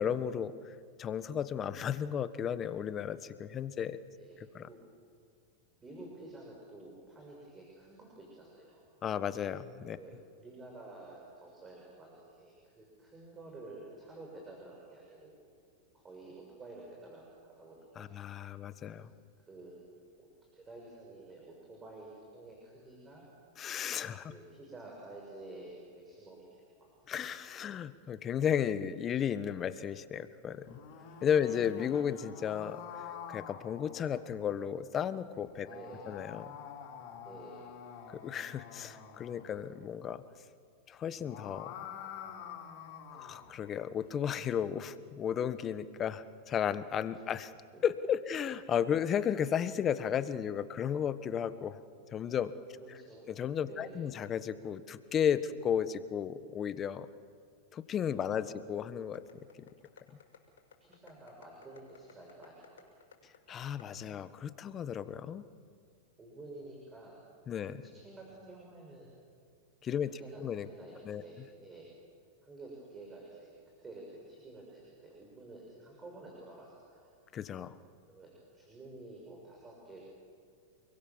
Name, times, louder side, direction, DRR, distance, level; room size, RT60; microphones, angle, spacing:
voice 1, 0.0-4.0 4.5-4.7 9.0-10.0 17.9-19.1 23.6-24.3 27.1-30.8 31.2-32.8 33.3-35.7 36.1-36.5 38.1-40.2 40.9-41.7 43.2-47.5 47.8-51.8 52.1-52.5 53.3-57.1 57.7-59.2 63.5-65.4 67.5-67.8 69.8-70.1 70.4-70.7 71.0-71.2 77.3-77.7, left 8 dB, 30° left, 13 dB, 1.3 m, -34 dB
voice 2, 5.8-8.8 10.0-15.4 15.9-18.1 19.4-19.8 20.2-23.3 24.2-26.9 30.7-31.1 31.4-31.5 35.6-36.1 37.2-37.7 43.1-43.3 47.1-47.2 47.7-47.8 52.8-53.3 53.6-54.1 58.2-58.6 60.8-62.9 66.2-67.2 67.5-69.1 70.1-71.9 72.4-73.5 73.8-77.1 78.1-80.0, right 2 dB, 20° right, -2 dB, 6.5 m, -51 dB
sound 1, 30.5-34.4 35.4-39.6 41.0-43.5, left 8 dB, 55° left, 5.8 m, -47 dB
sound 2, 59.1-64.0, left 8 dB, 85° left, 6.2 m, -57 dB
28.5 x 22.5 x 7.3 m, 2.1 s
hypercardioid pair, 115°, 0 cm